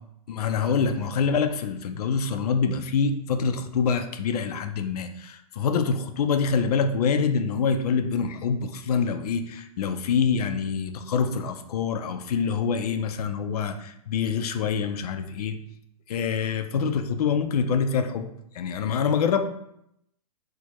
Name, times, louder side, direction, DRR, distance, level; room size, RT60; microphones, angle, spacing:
voice 1, 0.3-15.6 16.1-18.3 18.5-19.5, left 6 dB, 80° left, 8 dB, 0.4 m, -25 dB
4.5 x 2.1 x 2.9 m, 0.76 s
supercardioid pair, 170°, 19 cm